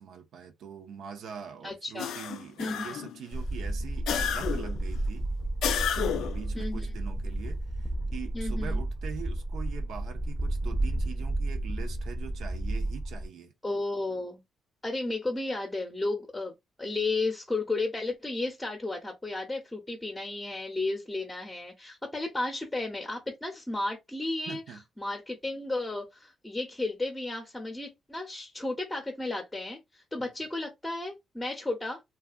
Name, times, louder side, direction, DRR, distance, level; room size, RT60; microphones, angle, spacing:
voice 1, 0.0-5.3 5.9-13.5 24.5-24.8 30.2-30.3, right 7 dB, 75° right, 0.5 m, -43 dB
voice 2, 1.6-2.1 2.6-3.0 6.5-6.9 8.3-8.8 13.6-14.4 14.8-16.5 16.8-24.6 25.0-32.0, left 2 dB, 10° left, 0.7 m, -33 dB
sound 1, 2.0-3.2 4.1-4.8 5.6-6.4, left 9 dB, 80° left, 0.3 m, -31 dB
sound 2, 3.3-13.3, right 1 dB, 25° right, 0.7 m, -32 dB
2.6 x 2.3 x 2.4 m
cardioid pair, 90°, 0 cm